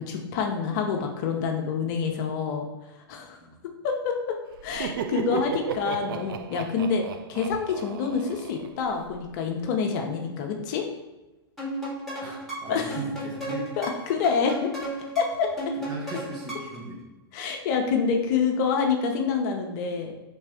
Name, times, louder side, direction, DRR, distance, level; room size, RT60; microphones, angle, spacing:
voice 1, 0.0-2.7 3.1-3.4 3.8-4.4 4.6-10.9 12.7-13.0 13.8-14.7 15.2-15.5 17.3-20.1, left 5 dB, 50° left, 3 dB, 0.7 m, -27 dB
Laughter, 4.5-9.2, right 7 dB, 65° right, 0.4 m, -35 dB
sound 1, 11.6-16.9, right 1 dB, ahead, 1.3 m, -35 dB
voice 2, 12.2-13.7 15.8-17.0, right 3 dB, 35° right, -2 dB, 1.3 m, -37 dB
3.4 x 3.2 x 4.7 m, 1.1 s
hypercardioid pair, 120°, 13 cm